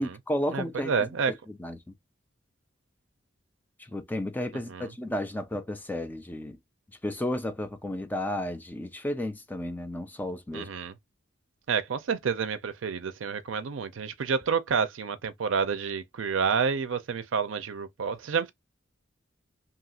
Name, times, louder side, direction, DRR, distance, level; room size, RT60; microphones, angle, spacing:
voice 1, 0.0-1.8 3.9-6.6 7.0-10.7, left 1 dB, 10° left, 0.3 m, -33 dB
voice 2, 0.5-1.3 4.7-4.9 10.5-10.9 11.7-18.5, right 6 dB, 85° right, 0.5 m, -29 dB
2.8 x 2.4 x 2.8 m
head